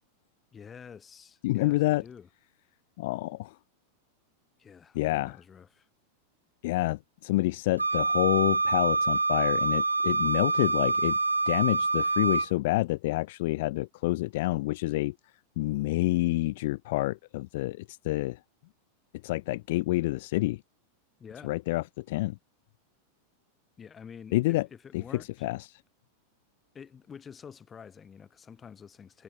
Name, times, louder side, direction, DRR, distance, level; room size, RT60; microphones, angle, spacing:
voice 1, 0.5-2.3 4.6-5.9 21.2-21.5 23.8-25.5 26.7-29.2, left 7 dB, 20° left, 5.9 m, -48 dB
voice 2, 1.4-2.0 3.0-3.5 4.9-5.4 6.6-11.2 11.5-15.1 15.6-18.4 19.2-20.6 21.4-22.4 24.3-24.7 24.9-25.0 25.4-25.8, left 19 dB, 50° left, 0.9 m, -28 dB
Wind instrument woodwind instrument, 7.8-12.5, right 3 dB, 80° right, 0.3 m, -26 dB
figure-of-eight pair, 90°, 0 cm